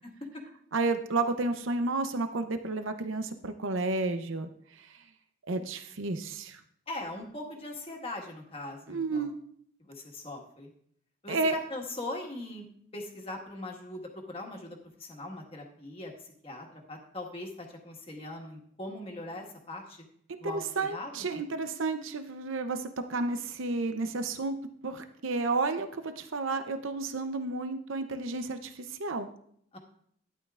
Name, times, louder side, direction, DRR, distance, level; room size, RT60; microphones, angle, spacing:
voice 1, 0.7-5.0 5.5-6.6 8.9-9.3 11.3-11.6 20.4-24.6 24.8-29.3, right 3 dB, 80° right, 8 dB, 0.7 m, -31 dB
voice 2, 6.9-9.3 9.8-10.7 11.2-12.6 12.9-20.0 20.4-20.6 20.9-21.3 29.7-29.8, left 2 dB, 30° left, 1 dB, 1.6 m, -40 dB
12.0 x 10.5 x 2.5 m, 0.66 s
head